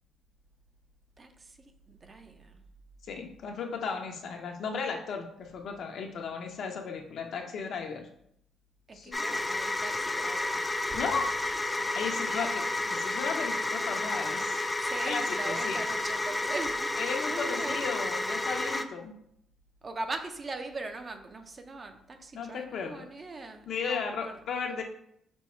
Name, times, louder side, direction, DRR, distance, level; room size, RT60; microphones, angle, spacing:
voice 1, 1.2-1.5 1.9-2.5 8.9-11.0 12.3-12.5 14.8-17.9 19.8-24.3, right 3 dB, 35° right, 6 dB, 0.6 m, -41 dB
voice 2, 3.0-8.1 8.9-9.4 10.9-11.3 11.9-14.6 15.1-15.8 17.0-19.1 22.3-23.1 23.7-24.8, left 5 dB, 70° left, 3 dB, 0.8 m, -35 dB
sound 1, 9.1-18.8, left 2 dB, 15° left, 0.3 m, -31 dB
5.3 x 2.3 x 4.3 m, 0.71 s
cardioid pair, 90°, 0 cm